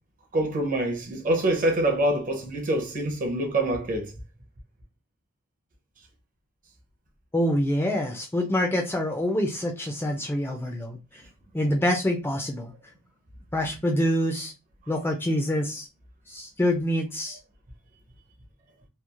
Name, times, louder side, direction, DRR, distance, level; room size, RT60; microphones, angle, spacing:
voice 1, 0.3-4.1, right 1 dB, 35° right, 0.6 m, -25 dB
voice 2, 7.3-11.2 11.5-12.7 13.5-14.5 14.9-15.9 16.3-17.4, left 1 dB, 10° left, 0.3 m, -26 dB
3.0 x 2.3 x 2.3 m
head